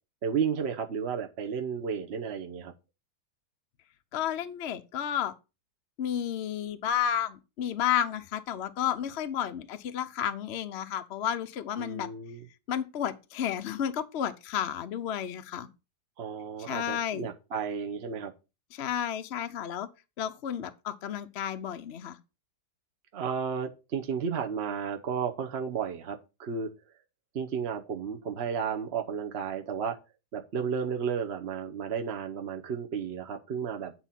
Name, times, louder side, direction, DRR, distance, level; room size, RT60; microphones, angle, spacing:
voice 1, 0.2-2.7 11.8-12.4 16.2-18.3 23.1-26.7 27.3-30.0 30.3-33.9, right 6 dB, 45° right, 1.0 m, -33 dB
voice 2, 4.1-5.3 6.0-12.1 12.7-15.7 16.6-17.3 18.7-19.9 20.2-22.2, left 9 dB, 55° left, 0.7 m, -32 dB
9.1 x 4.3 x 5.7 m
omnidirectional pair, 1.8 m